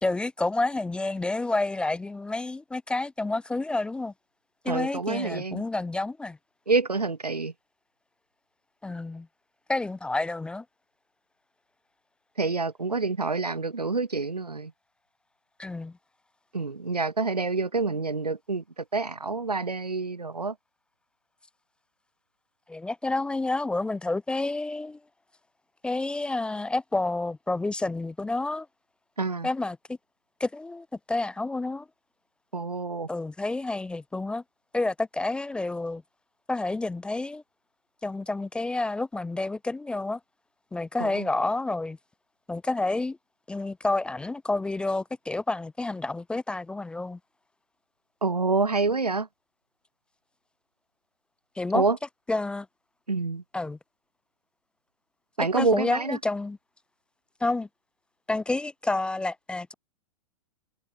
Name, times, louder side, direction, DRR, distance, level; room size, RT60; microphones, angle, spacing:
voice 1, 0.0-4.1 4.6-6.4 8.8-9.3 9.7-10.6 15.6-15.9 22.7-25.0 25.8-28.7 29.4-30.0 30.4-31.9 33.1-34.4 34.7-36.0 36.5-37.4 38.0-40.2 40.7-42.0 42.5-43.2 43.5-47.2 51.6-51.8 52.3-52.7 53.5-53.8 55.5-56.6 57.4-57.7 58.3-59.7, left 2 dB, 5° left, 0.4 m, -29 dB
voice 2, 4.7-5.6 6.7-7.5 12.4-14.7 16.5-20.6 29.2-29.5 32.5-33.1 41.0-41.3 48.2-49.3 51.7-52.0 53.1-53.4 55.4-56.2, right 3 dB, 90° right, 0.5 m, -27 dB
figure-of-eight pair, 100°, 20 cm